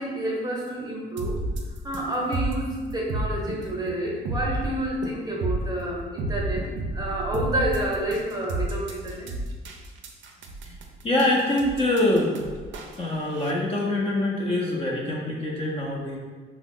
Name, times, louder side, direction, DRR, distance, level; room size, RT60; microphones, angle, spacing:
voice 1, 0.0-1.4 1.8-6.7 6.9-9.3, right 1 dB, 20° right, -3 dB, 0.8 m, -29 dB
sound 1, 1.2-13.5, right 2 dB, 70° right, 0.4 m, -31 dB
voice 2, 11.0-12.4 13.0-16.2, left 1 dB, 30° left, -3 dB, 0.5 m, -24 dB
2.8 x 2.0 x 3.7 m, 1.5 s
cardioid pair, 90°, 20 cm